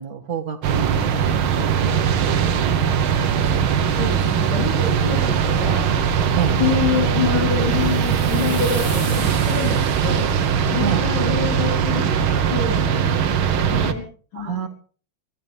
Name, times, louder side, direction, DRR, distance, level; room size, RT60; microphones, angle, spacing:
voice 1, 0.0-3.9 6.3-6.6 10.8-11.1 14.3-14.7, right 7 dB, 45° right, 5 dB, 2.0 m, -30 dB
sound 1, 0.6-13.9, right 7 dB, 70° right, 1.9 m, -20 dB
voice 2, 3.9-5.9 6.6-10.2 10.7-12.2 12.5-14.0 14.3-14.6, left 6 dB, 60° left, -4 dB, 5.1 m, -26 dB
sound 2, 7.5-10.7, left 2 dB, 90° left, 6.2 m, -39 dB
22.5 x 16.0 x 3.5 m, 0.42 s
omnidirectional pair, 2.4 m